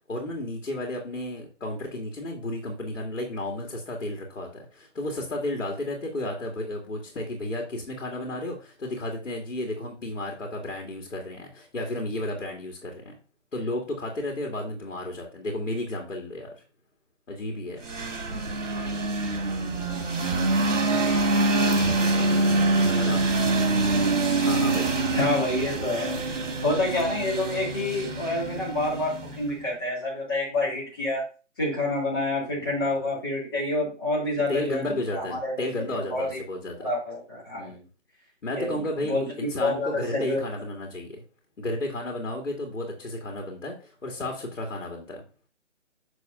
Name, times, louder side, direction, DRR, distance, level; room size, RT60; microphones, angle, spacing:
voice 1, 0.1-13.1 13.5-16.5 17.3-17.8 22.9-23.2 24.4-25.0 32.5-32.9 34.3-36.9 37.5-37.9 38.4-41.2 41.6-45.2, left 1 dB, 85° left, 1 dB, 2.1 m, -33 dB
sound 1, 17.8-29.6, right 2 dB, 75° right, 1.7 m, -25 dB
voice 2, 25.1-26.2 26.6-31.2 31.6-36.4 36.8-37.7 38.6-39.3 39.6-40.4, left 2 dB, 20° left, -6 dB, 2.4 m, -28 dB
7.2 x 6.2 x 2.5 m, 0.35 s
hypercardioid pair, 175°, 37 cm